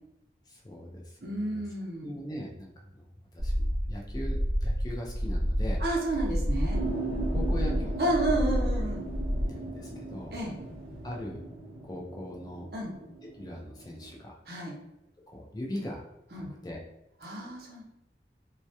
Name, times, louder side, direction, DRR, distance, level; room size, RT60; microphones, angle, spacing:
voice 1, 0.5-1.6 2.0-5.8 6.8-8.0 9.5-10.4 11.0-11.4 11.8-12.7 13.4-14.4 15.3-16.0 16.6-16.8, left 1 dB, 20° left, -1 dB, 0.3 m, -40 dB
voice 2, 1.2-2.1 5.8-6.8 8.0-9.1 10.3-10.6 12.7-12.9 14.5-14.8 16.3-16.5 17.2-17.8, right 1 dB, 60° right, -2 dB, 0.6 m, -31 dB
sound 1, 3.4-9.5, equal, 70° left, 0.9 m, -29 dB
sound 2, 6.7-14.2, right 2 dB, 5° right, 1.0 m, -39 dB
2.2 x 2.1 x 2.7 m, 0.87 s
head